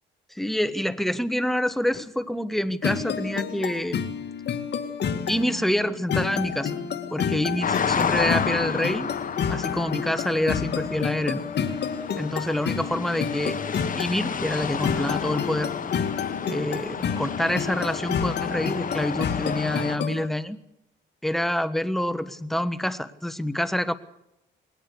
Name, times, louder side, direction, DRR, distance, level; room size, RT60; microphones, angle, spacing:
voice 1, 0.3-4.0 5.3-6.8 7.1-9.1 9.5-11.4 12.2-13.6 14.0-15.7 16.4-20.6 21.2-23.9, left 1 dB, ahead, 12 dB, 1.3 m, -27 dB
sound 1, 2.8-20.3, left 7 dB, 60° left, 2.1 m, -30 dB
sound 2, 7.6-20.0, left 6 dB, 45° left, 1.5 m, -31 dB
20.5 x 18.5 x 6.8 m, 0.85 s
cardioid pair, 90°, 20 cm